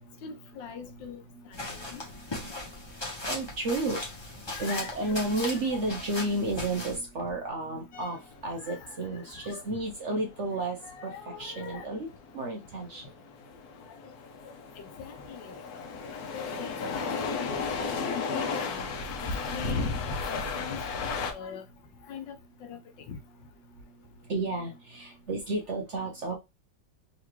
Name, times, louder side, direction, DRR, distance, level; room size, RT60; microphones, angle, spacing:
voice 1, 0.2-1.2 1.5-2.0 4.5-5.3 5.6-5.9 8.6-9.0 9.3-9.8 10.8-11.9 13.9-14.0 14.8-15.9 16.3-17.7 18.0-18.8 19.5-19.9 20.3-21.6 22.1-22.4 22.6-22.8 23.1-23.2, left 7 dB, 80° left, 1.4 m, -42 dB
voice 2, 1.3-1.9 2.4-12.1 12.3-13.2 19.1-19.7 23.7-26.3, right 2 dB, 60° right, 0.7 m, -33 dB
sound 1, 1.5-7.0, left 2 dB, 20° left, 0.8 m, -38 dB
sound 2, 7.9-21.3, left 4 dB, 65° left, 1.1 m, -34 dB
3.9 x 3.1 x 3.0 m
omnidirectional pair, 2.0 m